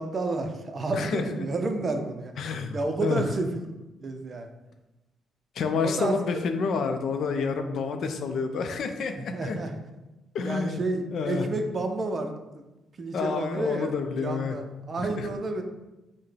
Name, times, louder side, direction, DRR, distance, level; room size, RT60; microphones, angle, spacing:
voice 1, 0.0-2.3 2.7-3.6 4.0-4.5 5.8-6.2 9.2-9.7 10.4-12.7 13.0-13.9 14.2-15.6, right 2 dB, 40° right, 5 dB, 0.5 m, -30 dB
voice 2, 0.9-1.4 2.4-3.2 5.5-9.6 10.3-10.9 11.1-11.5 13.1-14.6 15.0-15.3, left 5 dB, 65° left, 6 dB, 0.4 m, -29 dB
5.7 x 2.1 x 3.3 m, 1.0 s
cardioid pair, 90°, 0 cm